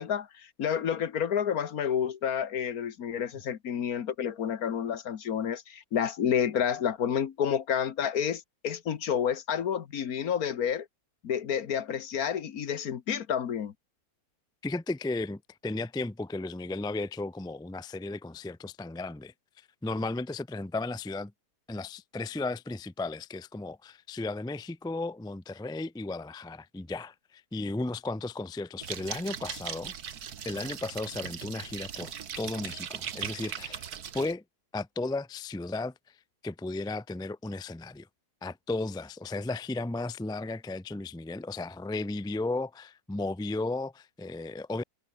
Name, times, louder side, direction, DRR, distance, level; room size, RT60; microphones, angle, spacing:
voice 1, 0.0-10.9 11.2-13.7, left 8 dB, 70° left, 1.6 m, -30 dB
voice 2, 14.6-21.3 21.7-29.9 30.4-33.9 34.1-34.4 34.7-36.2 36.4-38.1 38.4-44.8, left 2 dB, 5° left, 0.3 m, -35 dB
sound 1, 28.8-34.3, right 8 dB, 75° right, 1.8 m, -39 dB
omnidirectional pair, 1.6 m